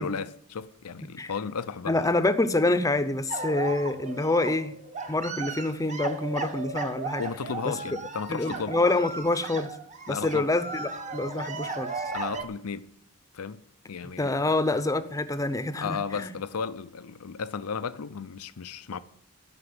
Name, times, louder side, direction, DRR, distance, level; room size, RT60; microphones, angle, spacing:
voice 1, 0.0-2.1 7.2-8.8 10.1-10.5 12.1-12.9 13.3-13.6 13.9-14.6 15.8-19.0, left 5 dB, 80° left, 0.6 m, -34 dB
voice 2, 1.9-4.8 5.1-7.2 7.6-7.7 8.3-9.7 10.1-12.0 14.2-16.3, left 2 dB, 15° left, 0.7 m, -26 dB
sound 1, 3.3-12.4, right 4 dB, 35° right, 1.2 m, -36 dB
13.0 x 6.1 x 9.6 m
head